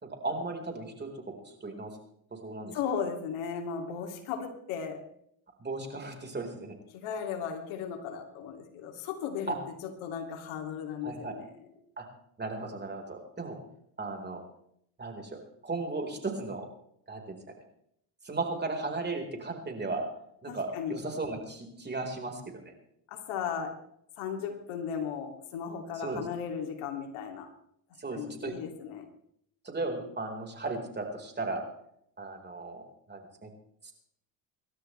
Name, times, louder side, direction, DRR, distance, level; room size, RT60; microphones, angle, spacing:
voice 1, 0.0-1.2 1.6-1.9 2.3-2.7 5.6-6.7 9.5-9.6 11.0-11.3 12.0-12.1 12.4-13.6 14.0-14.4 15.0-16.7 17.1-17.4 18.2-20.1 20.4-22.7 26.0-26.2 28.0-28.5 29.6-31.6 32.2-33.5 33.8-33.9, right 3 dB, 20° right, 2 dB, 4.6 m, -36 dB
voice 2, 2.7-5.0 6.9-11.5 20.5-21.0 23.1-23.8 24.2-27.5 28.1-29.1, left 7 dB, 75° left, 4 dB, 2.9 m, -36 dB
26.5 x 13.0 x 3.3 m, 0.71 s
supercardioid pair, 95°, 49 cm